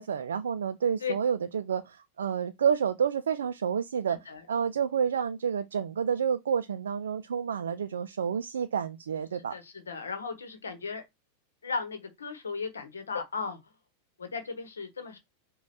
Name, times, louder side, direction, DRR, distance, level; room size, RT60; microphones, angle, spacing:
voice 1, 0.0-9.5, right 7 dB, 65° right, 0.3 m, -29 dB
voice 2, 4.1-4.4 9.5-11.0 11.6-13.6 14.2-15.2, left 5 dB, 70° left, 1.0 m, -36 dB
5.0 x 2.3 x 4.1 m
figure-of-eight pair, 90°, 0 cm